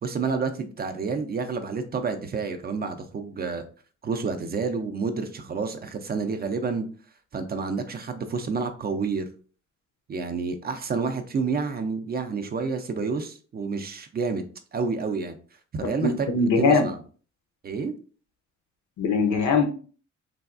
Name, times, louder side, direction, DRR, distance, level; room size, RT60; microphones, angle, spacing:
voice 1, 0.0-3.6 4.0-6.9 7.3-9.3 10.1-14.4 14.7-15.4 15.7-16.3 16.6-17.0 17.6-17.9, right 4 dB, 35° right, 7 dB, 0.4 m, -29 dB
voice 2, 16.0-16.9 19.0-19.6, left 4 dB, 70° left, 5 dB, 0.7 m, -21 dB
3.3 x 2.3 x 2.4 m, 0.40 s
cardioid pair, 90°, 30 cm